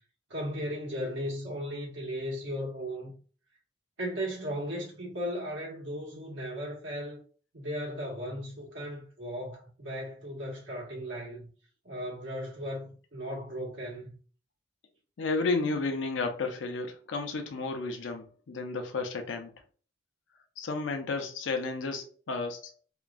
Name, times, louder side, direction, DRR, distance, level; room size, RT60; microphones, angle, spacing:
voice 1, 0.3-3.1 4.0-7.2 7.5-11.5 11.8-14.1, equal, 90° right, 1.3 m, -36 dB
voice 2, 15.2-19.5 20.6-22.7, left 3 dB, 90° left, 0.5 m, -32 dB
2.9 x 2.5 x 2.3 m
head